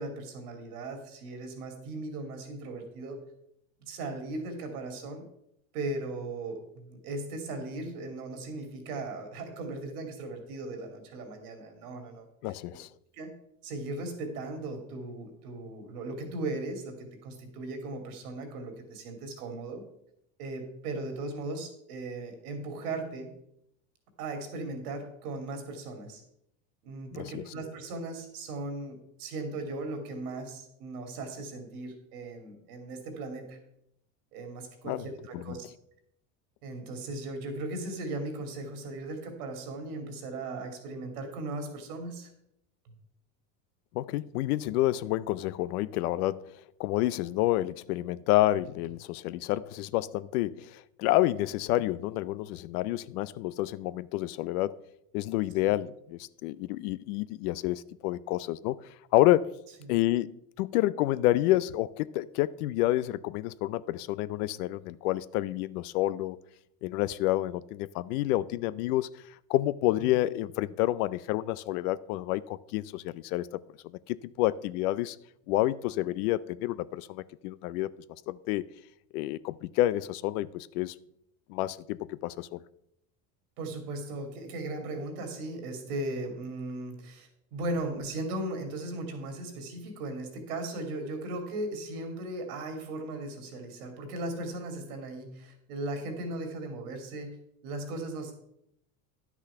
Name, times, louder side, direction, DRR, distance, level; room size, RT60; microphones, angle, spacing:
voice 1, 0.0-3.2 3.9-5.2 5.7-12.3 13.1-13.3 13.6-19.8 20.4-23.3 24.2-26.2 26.8-33.6 34.3-35.6 36.6-42.3 83.6-97.4 97.6-98.3, right 2 dB, 90° right, 2.7 m, -37 dB
voice 2, 12.4-12.9 27.1-27.4 34.8-35.1 35.3-35.6 43.9-54.8 55.1-58.8 59.1-59.5 59.9-66.4 66.8-69.2 69.5-73.5 73.8-75.2 75.5-77.9 78.3-78.7 79.1-80.9 81.5-82.6, left 16 dB, 85° left, 0.6 m, -29 dB
10.5 x 6.2 x 5.5 m
supercardioid pair, 120°, 43 cm